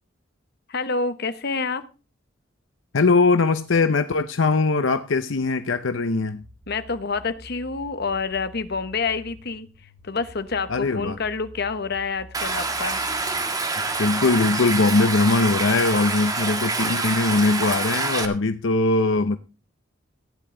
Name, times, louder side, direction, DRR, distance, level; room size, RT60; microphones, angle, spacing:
voice 1, 0.7-1.8 6.7-9.7 10.0-13.0, left 4 dB, 55° left, 1.1 m, -28 dB
voice 2, 2.9-6.4 10.7-11.2 14.0-19.4, left 3 dB, 75° left, 0.7 m, -21 dB
sound 1, 6.4-14.1, equal, 80° right, 4.4 m, -47 dB
Stream, 12.3-18.3, right 3 dB, 20° right, 1.6 m, -26 dB
15.0 x 10.0 x 3.8 m
head